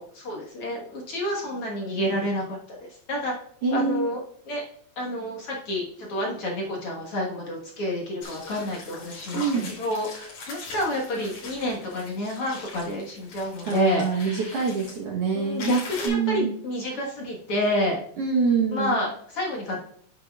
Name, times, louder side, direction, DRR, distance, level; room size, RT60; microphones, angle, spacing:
voice 1, 0.0-3.3 3.7-4.2 4.5-4.6 5.0-14.7 15.3-18.0 18.7-19.8, left 1 dB, 55° left, -2 dB, 2.0 m, -29 dB
voice 2, 3.6-4.1 9.3-9.7 13.6-15.7 16.0-16.5 18.2-19.0, right 5 dB, 60° right, -2 dB, 1.7 m, -25 dB
sound 1, 8.2-15.0 15.6-16.1, left 3 dB, 85° left, 4.5 m, -41 dB
9.5 x 8.1 x 2.3 m, 0.63 s
omnidirectional pair, 3.8 m